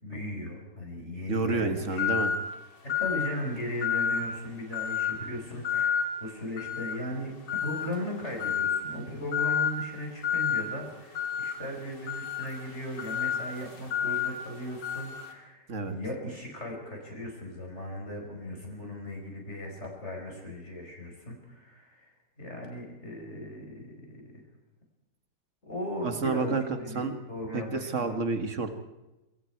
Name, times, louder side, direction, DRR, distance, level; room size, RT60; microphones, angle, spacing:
voice 1, 0.0-2.1 2.9-22.1 22.4-24.4 25.6-28.2, left 1 dB, 40° left, 0 dB, 5.4 m, -37 dB
voice 2, 1.3-2.3 15.7-15.9 26.0-27.2 27.5-28.7, right 4 dB, 45° right, 7 dB, 2.2 m, -29 dB
sound 1, 2.0-2.5 2.9-3.4 3.8-4.3 4.7-5.2 5.6-6.1 6.6-7.0 7.5-7.9 8.4-8.8 9.3-9.7 10.2-10.6 11.1-15.3, left 8 dB, 80° left, 3.9 m, -30 dB
26.0 x 23.5 x 4.7 m, 1.0 s
omnidirectional pair, 1.9 m